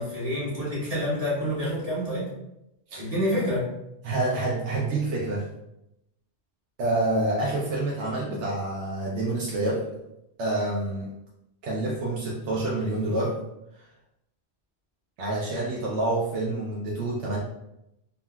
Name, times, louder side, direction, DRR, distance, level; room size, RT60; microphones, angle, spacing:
voice 1, 0.0-2.3 3.0-3.7, equal, 35° right, -8 dB, 0.9 m, -28 dB
voice 2, 4.0-5.4 6.8-9.8 10.4-11.1 11.6-13.4 15.2-17.4, right 2 dB, 85° right, -4 dB, 0.9 m, -27 dB
3.6 x 2.2 x 2.2 m, 0.85 s
omnidirectional pair, 1.1 m